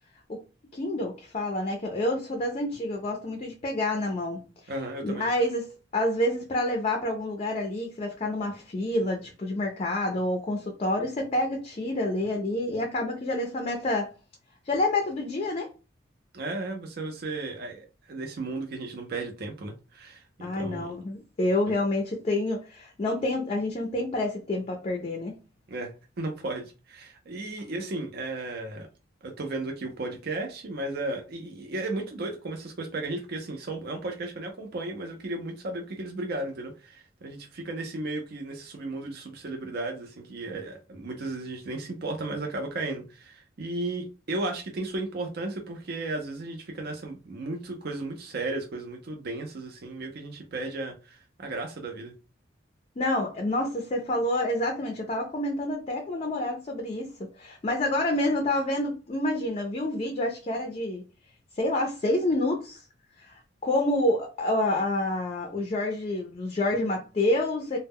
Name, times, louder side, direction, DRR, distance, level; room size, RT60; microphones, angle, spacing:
voice 1, 0.7-4.7 5.0-14.1 14.7-15.7 20.4-25.3 53.0-61.0 61.6-62.8 63.2-67.8, left 1 dB, 35° left, 0.4 m, -28 dB
voice 2, 4.7-5.2 16.3-20.9 21.7-21.8 25.7-28.9 29.2-52.1, right 2 dB, 55° right, 0.5 m, -35 dB
2.1 x 2.0 x 3.5 m
head